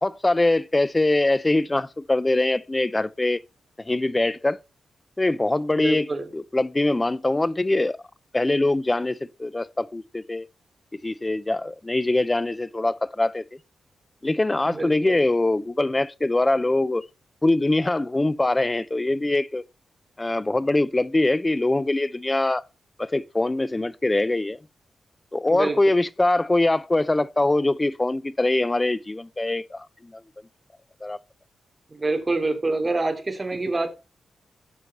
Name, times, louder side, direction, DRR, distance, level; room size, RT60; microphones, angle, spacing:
voice 1, 0.0-3.4 3.8-4.6 5.2-8.0 8.3-10.5 11.0-13.4 14.2-17.0 17.4-19.6 20.2-22.6 23.0-24.6 25.3-30.2 31.0-31.2, left 2 dB, 15° left, 0.6 m, -23 dB
voice 2, 5.7-6.3 14.6-15.2 25.5-25.8 31.9-33.9, right 2 dB, 20° right, 2.8 m, -26 dB
15.5 x 6.4 x 4.2 m
wide cardioid pair, 140°, 0 cm